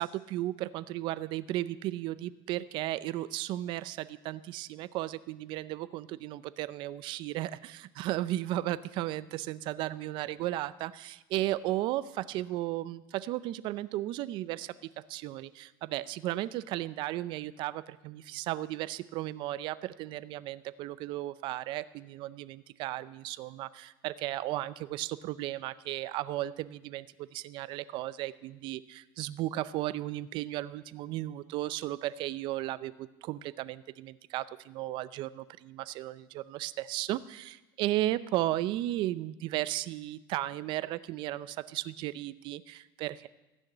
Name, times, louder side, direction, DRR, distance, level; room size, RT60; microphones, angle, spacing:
voice 1, 0.0-43.3, right 15 dB, 45° right, 15 dB, 0.5 m, -35 dB
14.5 x 6.4 x 8.9 m, 1.0 s
supercardioid pair, 145°, 11 cm